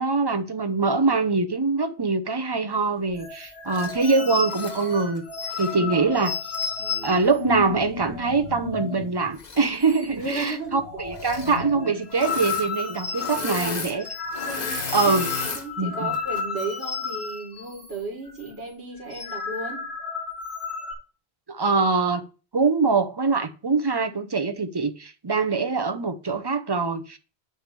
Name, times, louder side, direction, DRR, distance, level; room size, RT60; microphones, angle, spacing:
voice 1, 0.0-5.2 5.6-6.3 7.0-14.0 14.9-15.3 15.8-16.1 21.5-22.2 22.5-27.2, right 4 dB, 25° right, 0.7 m, -23 dB
sound 1, 3.1-9.1 9.4-9.5 9.8-10.4 10.7-18.0 18.3-18.5 18.9-20.9, left 4 dB, 70° left, 2.4 m, -33 dB
Engine / Mechanisms, 3.7-4.0 4.4-5.8 6.5-6.6 9.3-9.9 10.2-10.6 11.1-11.6 12.1-12.7 12.9-15.6 16.1-16.4, left 4 dB, 45° left, 1.1 m, -34 dB
voice 2, 5.7-6.2 6.8-7.3 10.2-10.8 13.4-14.0 14.5-15.2 15.5-19.8, right 3 dB, 75° right, 2.2 m, -34 dB
9.2 x 3.6 x 6.8 m
omnidirectional pair, 1.1 m